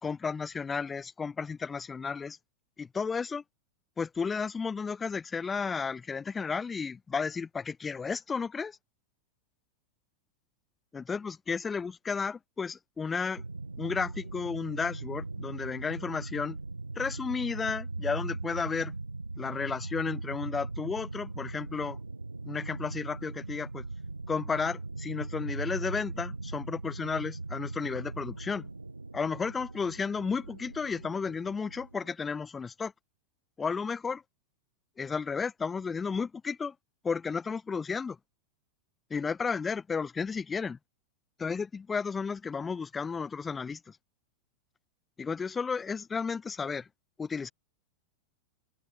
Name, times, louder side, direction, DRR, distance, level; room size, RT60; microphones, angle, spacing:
voice 1, 0.0-2.4 2.8-3.4 4.0-8.8 10.9-13.4 13.8-16.6 16.9-18.9 19.4-22.0 22.4-23.8 24.3-28.7 29.1-32.9 33.6-34.2 35.0-36.7 37.0-38.2 39.1-40.8 41.4-44.0 45.2-46.9 47.2-47.5, left 5 dB, 15° left, 3.0 m, -33 dB
sound 1, 13.4-32.1, right 3 dB, 80° right, 7.1 m, -40 dB
open air
figure-of-eight pair, 90°, 0 cm